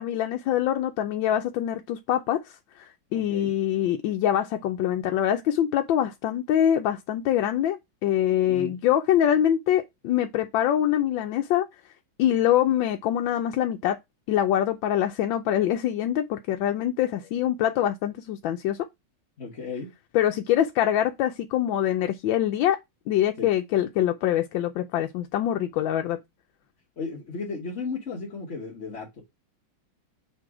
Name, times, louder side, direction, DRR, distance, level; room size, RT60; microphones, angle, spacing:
voice 1, 0.0-11.7 12.2-14.0 14.3-18.9 20.1-22.8 23.1-26.2, left 11 dB, 75° left, 1.3 m, -24 dB
voice 2, 3.1-3.5 8.5-8.7 19.4-19.9 23.4-23.5 27.0-29.2, left 4 dB, 40° left, 1.4 m, -35 dB
6.8 x 3.3 x 4.7 m
omnidirectional pair, 2.2 m